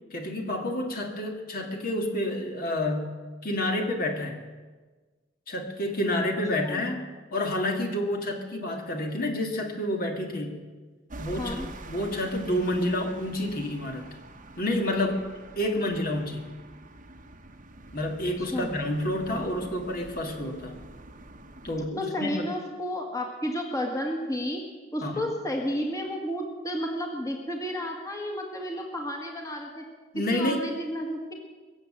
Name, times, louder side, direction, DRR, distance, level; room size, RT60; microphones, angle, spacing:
voice 1, 0.1-4.4 5.5-7.0 7.3-10.6 11.2-14.1 14.6-15.3 15.6-16.5 17.9-20.8 21.6-22.5 25.0-25.3 30.1-30.6, left 1 dB, 50° left, 2 dB, 2.1 m, -29 dB
sound 1, 11.1-21.9, right 2 dB, 40° right, 1.1 m, -46 dB
voice 2, 11.4-11.7 18.4-18.7 22.0-24.6 24.9-29.8 30.3-31.3, equal, 15° left, 1 dB, 1.8 m, -32 dB
23.5 x 7.8 x 7.5 m, 1.3 s
head